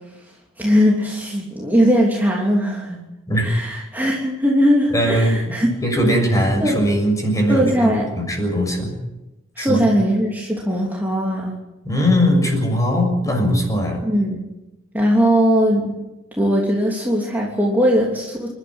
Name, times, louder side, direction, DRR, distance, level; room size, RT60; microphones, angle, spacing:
voice 1, 0.6-3.0 3.4-5.7 6.6-6.8 7.5-8.1 9.5-11.5 14.0-14.4 14.9-16.0 16.4-18.5, equal, 10° right, -3 dB, 3.2 m, -19 dB
voice 2, 4.9-8.9 9.6-9.9 11.8-14.0, equal, 15° left, 3 dB, 6.6 m, -20 dB
29.0 x 12.5 x 9.8 m, 1.0 s
head